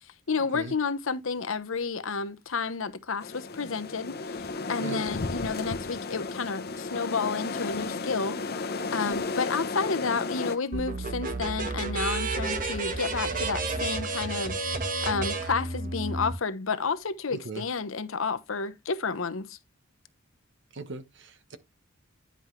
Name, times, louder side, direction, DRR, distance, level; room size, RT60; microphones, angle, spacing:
voice 1, 0.3-14.6 15.0-19.6, left 4 dB, 75° left, 0.9 m, -31 dB
sound 1, 3.2-10.6, left 3 dB, 50° left, 0.9 m, -33 dB
sound 2, 10.7-16.3, right 3 dB, 40° right, 1.4 m, -31 dB
voice 2, 17.3-17.6 20.7-21.6, right 3 dB, 60° right, 1.1 m, -39 dB
10.0 x 5.3 x 3.2 m
head